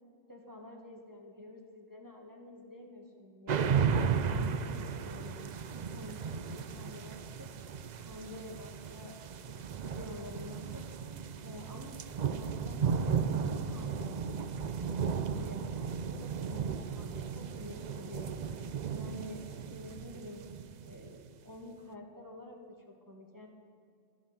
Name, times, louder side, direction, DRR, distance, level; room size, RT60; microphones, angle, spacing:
voice 1, 0.3-3.8 4.3-5.5 5.9-7.5 8.0-9.4 9.8-10.8 11.4-18.3 18.9-20.4 20.8-23.5, left 1 dB, 15° right, 0 dB, 1.9 m, -49 dB
sound 1, 3.5-21.3, right 6 dB, 55° right, 0.5 m, -35 dB
13.0 x 12.0 x 8.2 m, 2.4 s
omnidirectional pair, 1.3 m